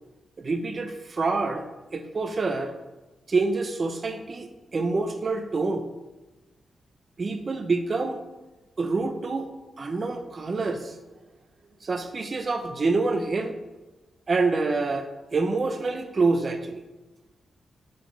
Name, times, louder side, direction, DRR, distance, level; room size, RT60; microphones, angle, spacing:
voice 1, 0.4-1.6 1.9-2.7 3.3-5.8 7.2-8.2 8.8-9.5 9.8-10.9 11.8-13.6 14.3-16.8, right 3 dB, 35° right, 7 dB, 0.5 m, -27 dB
5.8 x 5.1 x 3.2 m, 1.1 s
wide cardioid pair, 140°, 0 cm